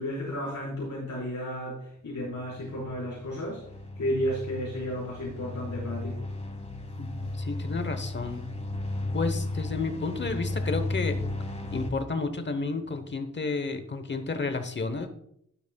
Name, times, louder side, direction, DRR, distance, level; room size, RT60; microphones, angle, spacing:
voice 1, 0.0-3.6 4.0-6.2, equal, 65° left, -7 dB, 4.2 m, -33 dB
sound 1, 2.2-11.9, left 2 dB, 20° left, 1.2 m, -34 dB
voice 2, 7.0-8.4 9.1-11.2 11.7-15.1, left 3 dB, 35° left, 9 dB, 0.9 m, -31 dB
12.0 x 10.5 x 2.2 m, 0.72 s
wide cardioid pair, 175°, 31 cm